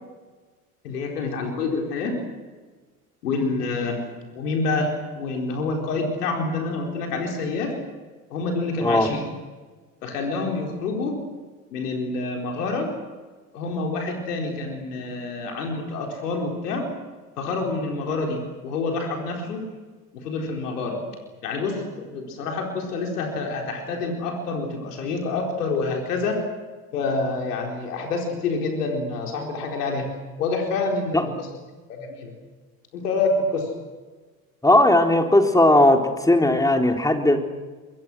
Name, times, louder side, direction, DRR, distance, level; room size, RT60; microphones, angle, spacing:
voice 1, 0.8-2.2 3.2-4.0 4.3-7.7 8.3-9.2 10.0-11.2 11.7-12.9 13.5-16.9 17.4-19.6 20.1-21.0 21.4-26.4 26.9-30.1 30.4-31.5 31.9-32.3 32.9-33.7, left 3 dB, 80° left, 1 dB, 4.4 m, -27 dB
voice 2, 8.8-9.1 31.1-31.3 34.6-37.4, left 1 dB, 10° left, 3 dB, 3.9 m, -17 dB
27.5 x 23.5 x 6.3 m, 1.3 s
hypercardioid pair, 65°, 46 cm